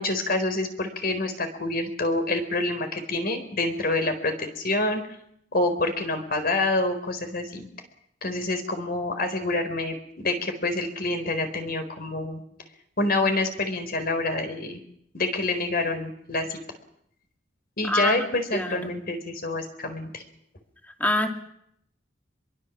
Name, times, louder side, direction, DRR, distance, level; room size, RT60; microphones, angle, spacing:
voice 1, 0.0-5.0 5.5-7.7 8.2-12.4 13.0-14.8 15.1-16.6 17.8-20.2, left 2 dB, 55° left, 7 dB, 4.3 m, -27 dB
voice 2, 17.8-18.3 18.5-18.9 21.0-21.3, left 1 dB, 10° left, 4 dB, 2.6 m, -25 dB
26.0 x 22.5 x 7.4 m, 0.73 s
head